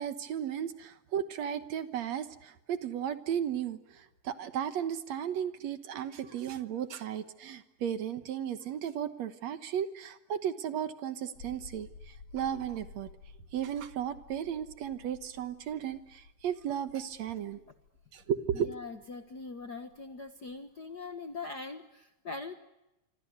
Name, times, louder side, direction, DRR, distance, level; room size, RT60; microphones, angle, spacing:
voice 1, 0.0-13.1 13.5-17.6 18.1-18.7, right 9 dB, 65° right, 12 dB, 2.3 m, -35 dB
sound 1, 11.3-21.5, left 4 dB, 70° left, 3.8 m, -54 dB
voice 2, 18.5-22.5, left 3 dB, 45° left, 8 dB, 1.4 m, -42 dB
26.0 x 26.0 x 8.0 m, 0.92 s
omnidirectional pair, 3.6 m